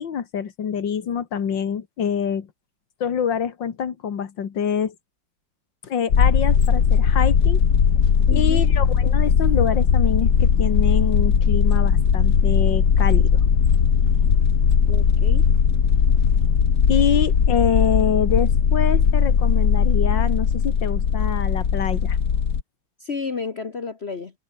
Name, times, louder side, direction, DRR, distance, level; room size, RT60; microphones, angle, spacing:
voice 1, 0.0-2.5 3.0-4.9 5.8-7.6 8.3-13.4 16.9-22.2, left 7 dB, 90° left, 2.5 m, -26 dB
sound 1, 6.1-22.6, left 7 dB, 65° left, 2.3 m, -18 dB
voice 2, 8.3-8.6 14.9-15.5 23.0-24.3, left 5 dB, 40° left, 1.4 m, -31 dB
omnidirectional pair, 1.9 m